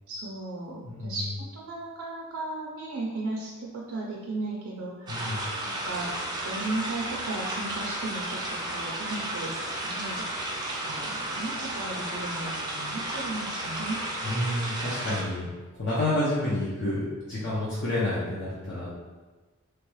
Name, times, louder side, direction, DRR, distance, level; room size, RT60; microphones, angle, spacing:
voice 1, 0.1-5.3 5.6-6.1 6.4-9.6 9.8-10.3 10.8-14.0, right 2 dB, 85° right, -3 dB, 0.5 m, -35 dB
voice 2, 0.8-1.2 5.1-5.5 14.2-15.5 15.8-18.9, left 1 dB, 55° left, -9 dB, 0.7 m, -29 dB
sound 1, 5.1-15.2, right 1 dB, 20° right, 0.5 m, -33 dB
3.2 x 2.3 x 3.1 m, 1.3 s
head